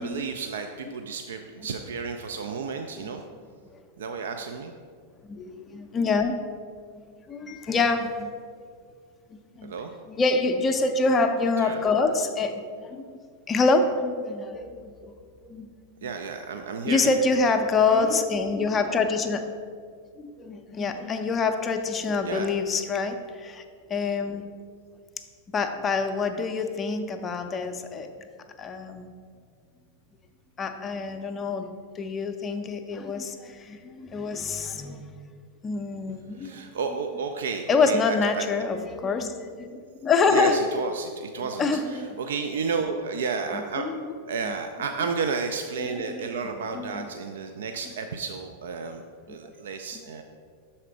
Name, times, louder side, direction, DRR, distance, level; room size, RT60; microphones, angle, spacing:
voice 1, 0.0-3.2 4.0-4.7 9.6-9.9 11.6-11.8 16.0-17.2 17.9-18.1 22.2-22.5 36.3-38.4 40.3-43.9 44.3-49.0 49.3-50.2, right 5 dB, 60° right, 6 dB, 0.3 m, -32 dB
voice 2, 5.2-6.3 6.9-7.0 7.3-8.3 9.3-9.7 10.1-13.0 13.5-15.1 15.4-15.7 16.9-19.5 20.2-23.6 23.9-24.5 25.5-28.1 28.6-29.1 30.6-35.1 35.6-36.5 37.7-40.6 41.6-42.2 43.5-44.1 45.8-46.3 46.7-47.1, left 4 dB, 20° left, 6 dB, 0.5 m, -26 dB
6.5 x 4.2 x 4.9 m, 2.1 s
figure-of-eight pair, 90°, 0 cm